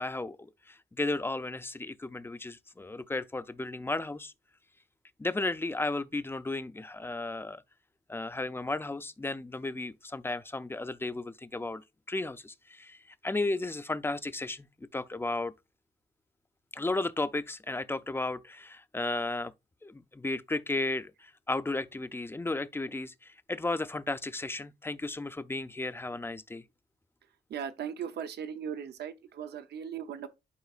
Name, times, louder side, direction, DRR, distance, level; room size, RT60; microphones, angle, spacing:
voice 1, 0.0-4.3 5.2-7.6 8.1-14.7 14.9-15.5 16.7-19.5 19.8-26.6, left 2 dB, 15° left, 0.5 m, -34 dB
voice 2, 27.5-30.3, right 8 dB, 80° right, 0.7 m, -38 dB
11.0 x 4.8 x 2.4 m
cardioid pair, 110°, 17 cm